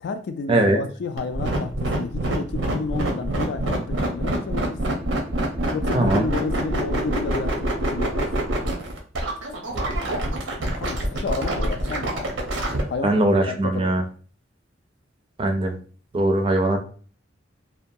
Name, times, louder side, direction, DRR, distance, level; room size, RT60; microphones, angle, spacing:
voice 1, 0.0-5.0 5.7-8.3 10.8-12.3 12.9-14.0, left 4 dB, 60° left, 0.3 m, -31 dB
sound 1, 1.2-12.8, right 1 dB, 90° right, 0.7 m, -25 dB
voice 2, 5.9-6.3 9.7-10.2 13.0-14.0 15.4-15.7 16.1-16.8, right 1 dB, 30° right, 0.4 m, -21 dB
2.7 x 2.2 x 2.6 m
head